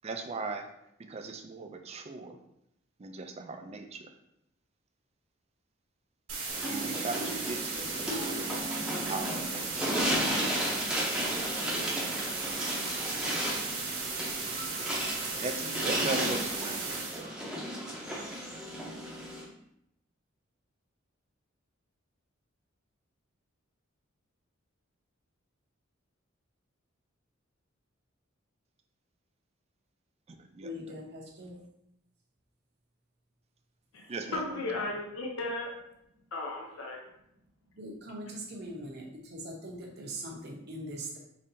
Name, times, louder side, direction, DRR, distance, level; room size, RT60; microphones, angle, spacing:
voice 1, 0.0-0.7 1.0-2.4 3.0-4.1 6.7-8.7 9.1-10.8 15.4-17.4 30.3-31.0 34.1-34.7, right 3 dB, 30° right, 6 dB, 0.4 m, -39 dB
sound 1, 6.3-17.2, right 4 dB, 70° right, 1.2 m, -36 dB
sound 2, 6.5-19.5, right 1 dB, 5° right, 0.8 m, -34 dB
voice 2, 14.5-15.7 30.6-31.7 37.8-41.2, right 1 dB, 55° right, 0 dB, 0.9 m, -42 dB
voice 3, 34.3-35.7 36.3-37.0, left 2 dB, 75° left, 0 dB, 0.7 m, -35 dB
5.2 x 3.2 x 2.7 m, 0.79 s
head